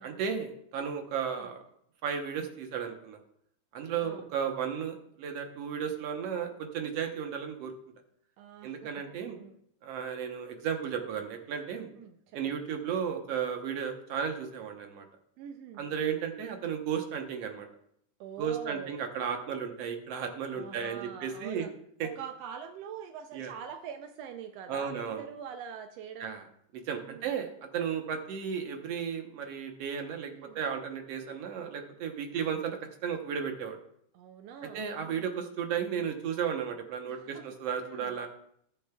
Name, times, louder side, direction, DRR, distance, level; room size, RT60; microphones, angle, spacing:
voice 1, 0.0-1.6 2.0-3.2 3.7-7.7 8.6-9.4 9.8-11.9 12.3-15.1 15.8-17.7 18.4-21.7 22.0-22.1 23.3-23.5 24.7-25.2 26.2-26.4 26.9-33.8 34.7-38.3, right 7 dB, 65° right, 4 dB, 1.8 m, -34 dB
voice 2, 8.4-9.6 12.0-12.6 15.4-15.8 18.2-19.0 20.5-21.7 22.0-26.4 27.0-27.3 30.3-30.6 34.1-35.3 37.1-37.5 37.8-38.1, right 8 dB, 85° right, 7 dB, 1.4 m, -44 dB
20.0 x 7.0 x 2.3 m, 0.71 s
omnidirectional pair, 3.5 m